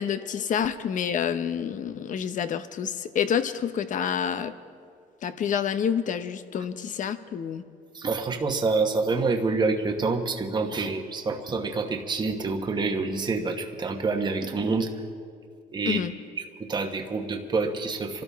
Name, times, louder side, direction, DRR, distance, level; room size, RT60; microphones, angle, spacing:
voice 1, 0.0-4.5 5.2-7.6 15.8-16.1, left 8 dB, 50° left, 12 dB, 0.8 m, -28 dB
voice 2, 7.9-14.9 15.7-16.0 16.6-18.2, right 4 dB, 25° right, 3 dB, 1.1 m, -27 dB
26.5 x 12.5 x 3.5 m, 2.1 s
cardioid pair, 110°, 17 cm